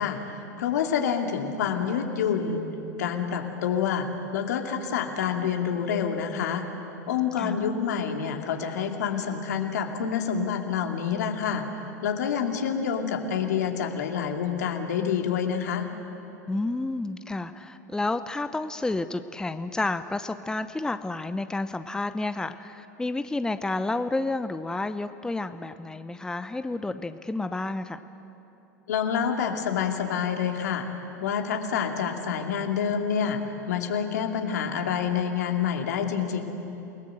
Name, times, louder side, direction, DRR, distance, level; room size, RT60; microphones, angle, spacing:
voice 1, 0.0-2.6 3.0-4.1 4.3-6.6 7.1-11.6 12.0-15.9 28.9-30.9 31.2-33.4 33.7-36.4, left 7 dB, 70° left, 3 dB, 2.5 m, -27 dB
voice 2, 16.5-28.0, left 2 dB, 5° left, 11 dB, 0.7 m, -30 dB
28.5 x 19.0 x 7.8 m, 3.0 s
hypercardioid pair, 90°, 9 cm